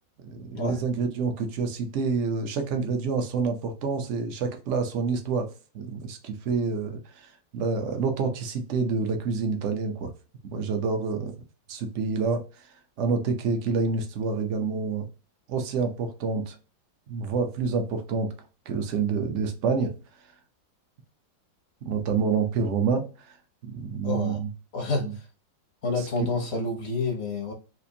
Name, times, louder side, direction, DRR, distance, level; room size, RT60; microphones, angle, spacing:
voice 1, 0.2-5.5 5.7-10.1 10.4-11.3 11.7-12.4 13.0-15.1 15.5-16.6 17.1-18.3 18.7-19.9 21.8-23.4 23.6-24.5 25.0-25.1, right 5 dB, 70° right, 0.7 m, -28 dB
voice 2, 24.0-24.4 24.7-25.2 25.8-27.5, left 3 dB, 55° left, 0.7 m, -29 dB
4.2 x 2.5 x 2.7 m
omnidirectional pair, 2.0 m